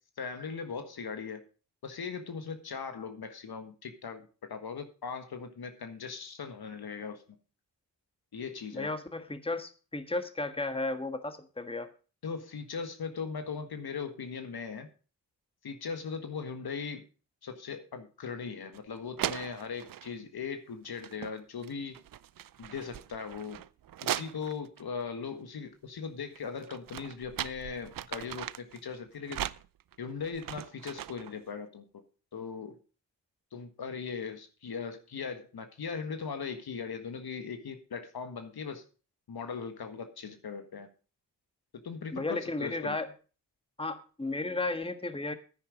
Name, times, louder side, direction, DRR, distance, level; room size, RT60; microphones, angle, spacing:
voice 1, 0.2-1.4 1.8-7.2 8.3-9.0 12.2-14.9 15.6-17.0 17.4-22.0 22.6-23.6 24.0-29.4 30.0-31.8 32.3-32.8 33.5-38.8 39.3-40.9 41.8-43.0, left 5 dB, 60° left, 8 dB, 1.7 m, -39 dB
voice 2, 8.7-11.9 42.1-43.1 43.8-45.3, left 2 dB, 15° left, 9 dB, 1.6 m, -34 dB
sound 1, 18.7-18.8 19.2-20.1 20.9-21.4 21.6-24.8 26.4-28.8 29.3-31.3, right 12 dB, 50° right, 0.6 m, -39 dB
9.9 x 9.8 x 5.2 m, 0.36 s
supercardioid pair, 45°, 42 cm